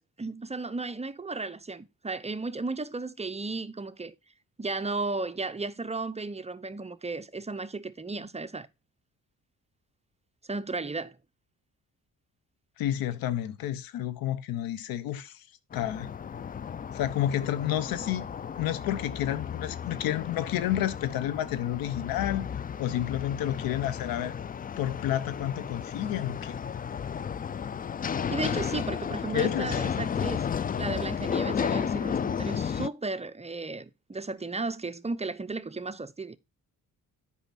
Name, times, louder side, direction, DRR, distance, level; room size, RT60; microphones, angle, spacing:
voice 1, 0.0-4.1 4.6-8.7 10.5-11.2 28.3-30.5 30.8-36.4, right 3 dB, 20° right, 0.7 m, -34 dB
voice 2, 12.8-15.4 15.7-16.1 16.9-18.2 18.6-24.3 24.8-26.6 29.3-29.8, left 12 dB, 85° left, 0.9 m, -30 dB
sound 1, 15.7-32.9, left 7 dB, 25° left, 0.4 m, -33 dB
8.3 x 5.5 x 4.1 m
cardioid pair, 70°, 34 cm